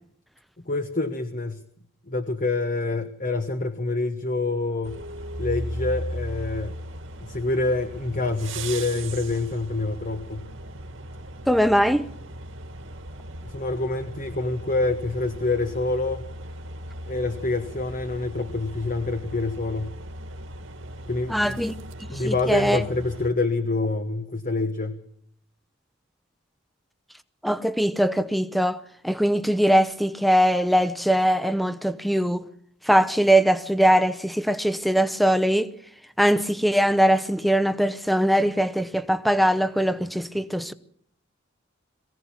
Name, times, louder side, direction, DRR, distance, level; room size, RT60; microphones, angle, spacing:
voice 1, 0.6-1.6 2.1-5.0 5.4-6.8 7.2-10.5 13.4-16.2 17.1-20.0 21.1-21.6 22.1-25.0, left 3 dB, 40° left, 1.2 m, -26 dB
sound 1, 4.8-23.3, right 1 dB, 75° right, 2.1 m, -37 dB
voice 2, 11.5-12.1 21.3-21.7 22.2-22.8 27.4-32.5 32.9-35.7 36.2-40.7, equal, ahead, 0.8 m, -21 dB
22.5 x 16.0 x 7.2 m
head